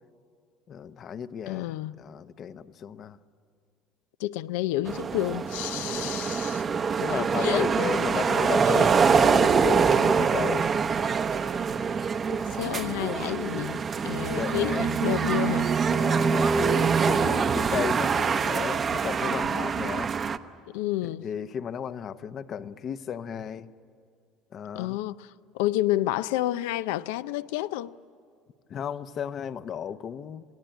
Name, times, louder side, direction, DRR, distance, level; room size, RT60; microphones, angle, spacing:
voice 1, 0.7-3.2 5.8-6.1 7.0-10.7 12.8-12.9 14.4-14.9 15.2-20.1 21.0-23.7 24.5-25.0 28.7-30.4, left 8 dB, 45° left, 0.8 m, -34 dB
voice 2, 1.5-2.0 4.2-6.7 7.2-7.6 8.7-8.8 12.3-15.7 20.7-21.2 24.8-27.9, left 15 dB, 85° left, 0.5 m, -30 dB
sound 1, 4.9-20.4, right 6 dB, 35° right, 0.8 m, -25 dB
27.5 x 18.0 x 9.0 m
supercardioid pair, 105°, 0 cm